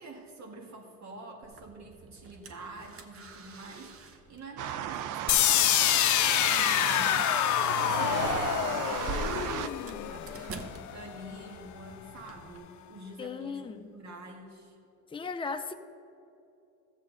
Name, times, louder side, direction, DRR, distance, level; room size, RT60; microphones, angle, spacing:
voice 1, 0.0-7.2 7.8-14.8, right 2 dB, 65° right, 2 dB, 1.8 m, -47 dB
sound 1, 1.4-12.6, right 3 dB, 50° right, 0.9 m, -47 dB
sound 2, 4.6-9.7, right 11 dB, 85° right, 0.5 m, -34 dB
sound 3, 5.3-11.2, left 13 dB, 70° left, 0.5 m, -27 dB
voice 2, 13.2-13.9 15.1-15.7, left 5 dB, 15° left, 6 dB, 0.6 m, -36 dB
14.5 x 7.3 x 3.9 m, 2.7 s
cardioid pair, 90°, 30 cm